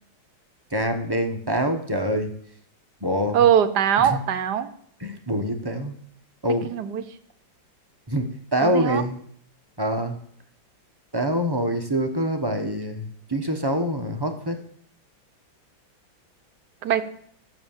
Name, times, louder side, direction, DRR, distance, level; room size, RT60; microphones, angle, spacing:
voice 1, 0.7-2.3 3.0-3.4 4.0-4.2 5.0-6.0 6.4-6.7 8.1-9.2 9.8-10.2 11.1-14.6, equal, 15° right, 5 dB, 0.9 m, -25 dB
voice 2, 3.3-4.7 6.6-7.0 8.6-9.0 16.8-17.0, right 9 dB, 60° right, 11 dB, 1.3 m, -21 dB
12.5 x 7.7 x 7.3 m, 0.62 s
omnidirectional pair, 2.2 m